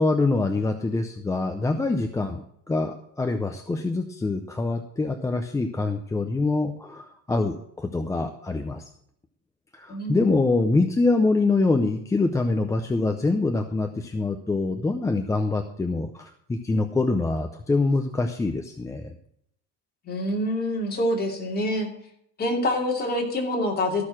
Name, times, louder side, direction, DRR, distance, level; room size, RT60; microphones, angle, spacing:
voice 1, 0.0-8.8 9.7-19.2, left 3 dB, 10° left, 5 dB, 0.5 m, -25 dB
voice 2, 9.9-10.3 20.1-21.9 22.4-24.1, left 1 dB, 25° left, 0 dB, 2.7 m, -26 dB
14.0 x 6.5 x 5.9 m, 0.72 s
cardioid pair, 150°, 41 cm